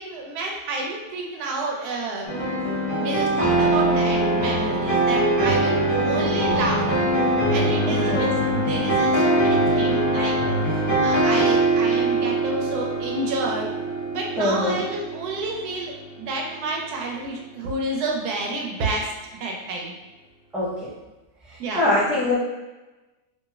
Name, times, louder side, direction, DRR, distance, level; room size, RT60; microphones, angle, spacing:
voice 1, 0.0-2.3 3.0-5.8 6.0-6.9 7.5-13.7 14.1-19.1 19.4-19.9 21.6-21.9, right 2 dB, 85° right, -1 dB, 1.1 m, -29 dB
sound 1, 2.3-16.2, right 1 dB, 25° left, 0.6 m, -22 dB
voice 2, 7.9-8.2 14.4-14.8 20.5-20.7 21.7-22.4, left 2 dB, ahead, -8 dB, 0.3 m, -22 dB
3.0 x 2.7 x 2.3 m, 1.1 s
omnidirectional pair, 1.6 m